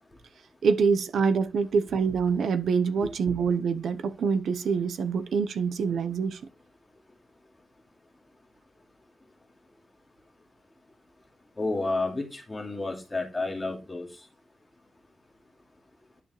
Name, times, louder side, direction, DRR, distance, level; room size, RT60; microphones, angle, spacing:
voice 1, 0.6-6.4, right 5 dB, 85° right, 0.9 m, -25 dB
voice 2, 11.6-14.1, left 2 dB, 15° left, 2.5 m, -30 dB
11.0 x 6.9 x 3.2 m
wide cardioid pair, 160°, 0 cm